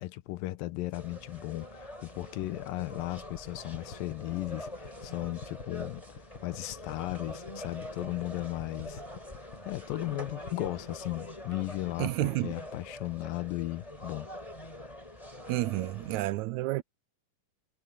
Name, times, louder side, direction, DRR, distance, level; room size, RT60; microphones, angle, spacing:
voice 1, 0.0-9.0 9.7-14.3, left 18 dB, 85° left, 2.5 m, -36 dB
sound 1, 0.9-16.2, left 1 dB, 10° left, 5.4 m, -45 dB
sound 2, 2.2-10.8, left 6 dB, 45° left, 2.5 m, -46 dB
voice 2, 12.0-12.5 15.5-16.8, right 18 dB, 80° right, 1.7 m, -30 dB
omnidirectional pair, 4.0 m